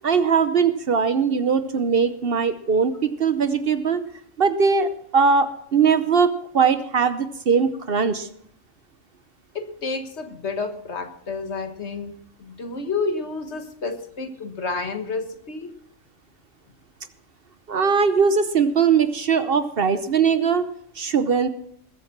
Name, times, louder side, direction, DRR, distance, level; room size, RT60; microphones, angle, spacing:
voice 1, 0.0-4.0 4.4-8.3 17.7-20.6 21.0-21.5, right 6 dB, 50° right, 11 dB, 1.0 m, -20 dB
voice 2, 9.6-12.1 12.4-15.7, left 4 dB, 60° left, 6 dB, 1.8 m, -30 dB
20.5 x 8.3 x 6.0 m, 0.71 s
omnidirectional pair, 1.3 m